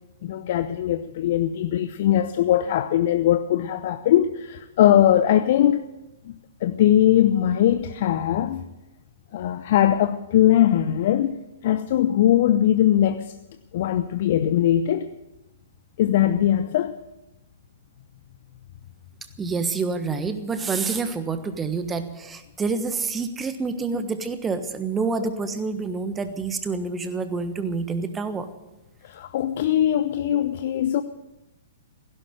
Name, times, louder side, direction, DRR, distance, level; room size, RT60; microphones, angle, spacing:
voice 1, 0.2-5.8 6.2-8.7 9.3-13.3 13.7-15.1 16.0-17.0 25.2-25.3 29.0-31.0, left 11 dB, 50° left, 11 dB, 0.6 m, -21 dB
voice 2, 19.4-28.5, right 4 dB, 15° right, 10 dB, 1.4 m, -27 dB
16.0 x 11.5 x 7.8 m, 0.98 s
figure-of-eight pair, 110°, 0 cm